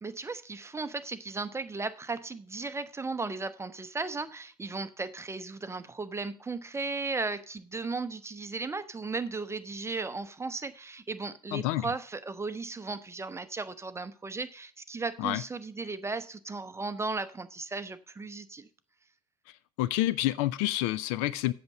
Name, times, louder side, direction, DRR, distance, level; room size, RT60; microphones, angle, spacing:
voice 1, 0.0-18.7, right 3 dB, 15° right, 0.8 m, -36 dB
voice 2, 11.5-11.9 15.2-15.4 19.8-21.5, left 16 dB, 60° left, 0.5 m, -28 dB
7.9 x 6.7 x 7.3 m
figure-of-eight pair, 70°, 19 cm